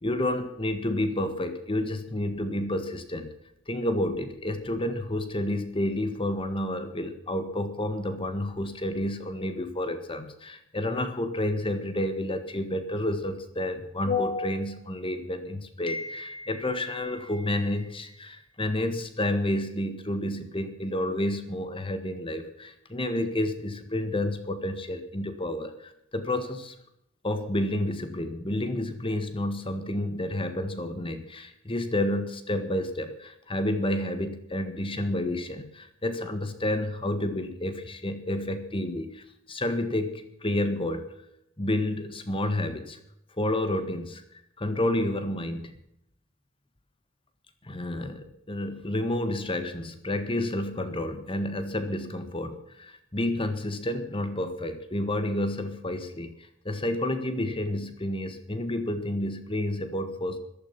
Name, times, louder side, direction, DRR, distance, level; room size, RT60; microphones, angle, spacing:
voice 1, 0.0-3.3 3.7-26.7 27.2-41.0 41.6-43.0 43.3-45.8 47.6-60.4, left 1 dB, 25° left, 9 dB, 1.7 m, -30 dB
14.5 x 13.0 x 5.9 m, 0.77 s
head